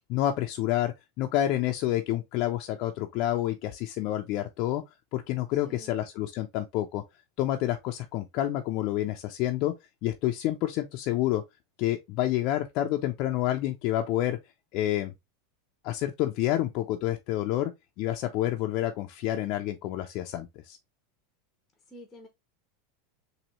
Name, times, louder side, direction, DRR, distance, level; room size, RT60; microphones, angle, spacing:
voice 1, 0.1-4.8 5.1-7.0 7.4-9.7 10.0-11.4 11.8-14.4 14.7-15.1 15.8-17.7 18.0-20.8, left 13 dB, 50° left, 0.5 m, -28 dB
voice 2, 5.6-6.0 21.9-22.3, equal, 10° left, 0.8 m, -48 dB
4.0 x 2.7 x 3.0 m
supercardioid pair, 140°, 0 cm